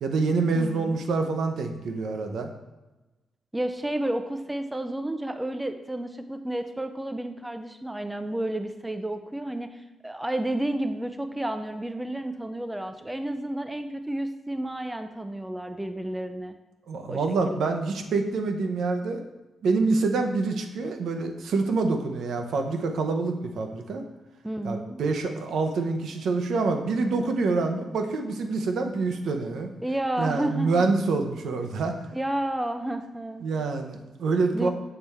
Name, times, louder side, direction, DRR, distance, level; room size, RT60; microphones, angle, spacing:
voice 1, 0.0-2.5 16.9-19.2 19.6-24.0 24.6-29.7 30.2-31.9 33.4-34.7, right 3 dB, 75° right, 5 dB, 0.7 m, -26 dB
voice 2, 0.5-1.0 3.5-16.5 17.1-17.7 24.4-25.0 29.8-30.9 32.1-33.5 34.5-34.7, right 1 dB, 10° right, 8 dB, 0.3 m, -31 dB
6.8 x 3.4 x 4.2 m, 1.1 s
cardioid pair, 130°, 0 cm